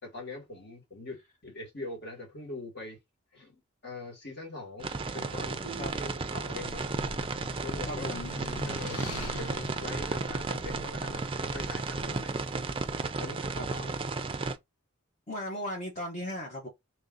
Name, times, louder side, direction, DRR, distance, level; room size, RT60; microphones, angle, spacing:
voice 1, 0.0-3.0 3.3-6.9 7.6-8.2 8.6-12.4 13.2-14.0, left 2 dB, 50° left, 1.6 m, -43 dB
sound 1, 4.8-14.6, right 3 dB, 25° right, 0.4 m, -34 dB
sound 2, 5.6-13.1, equal, 70° left, 1.1 m, -48 dB
sound 3, 6.0-11.9, left 4 dB, 90° left, 0.7 m, -45 dB
voice 2, 7.8-8.3 13.6-13.7 15.3-16.7, left 1 dB, 35° left, 0.9 m, -37 dB
3.2 x 2.7 x 3.6 m
head